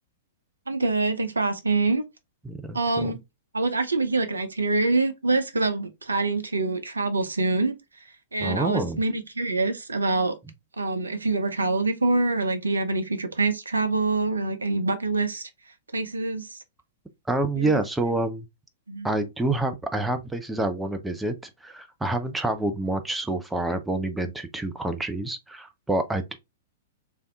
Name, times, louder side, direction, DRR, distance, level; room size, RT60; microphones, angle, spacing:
voice 1, 0.7-2.0 2.7-3.2 3.5-7.7 8.3-10.3 10.8-15.5 15.9-16.6 17.6-17.7 18.9-19.1, right 3 dB, 75° right, 0.7 m, -25 dB
voice 2, 2.4-3.2 8.4-9.0 17.3-18.5 19.0-26.4, right 2 dB, 5° right, 0.4 m, -27 dB
3.4 x 2.7 x 3.5 m
figure-of-eight pair, 105°, 0 cm